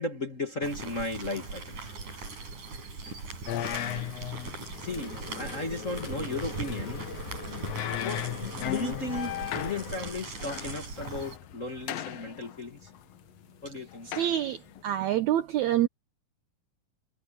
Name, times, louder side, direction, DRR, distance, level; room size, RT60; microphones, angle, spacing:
voice 1, 0.0-2.0 3.7-4.1 4.8-12.9 13.6-14.1, left 2 dB, 30° left, 1.6 m, -36 dB
sound 1, 0.6-11.4, right 3 dB, 55° right, 8.3 m, -40 dB
sound 2, 3.5-14.8, left 12 dB, 75° left, 1.6 m, -38 dB
sound 3, 4.7-10.1, left 5 dB, 50° left, 5.3 m, -44 dB
voice 2, 14.1-14.6 14.8-15.9, right 12 dB, 80° right, 1.7 m, -26 dB
omnidirectional pair, 4.2 m